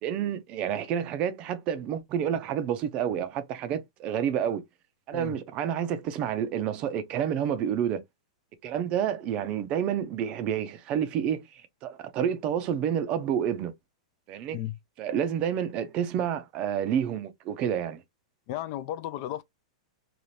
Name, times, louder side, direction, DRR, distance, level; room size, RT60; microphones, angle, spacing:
voice 1, 0.0-4.6 5.1-8.0 8.6-13.7 14.3-14.6 15.0-18.0, right 9 dB, 30° right, 0.5 m, -29 dB
voice 2, 18.5-19.4, left 13 dB, 40° left, 0.3 m, -34 dB
2.7 x 2.4 x 3.2 m
supercardioid pair, 155°, 4 cm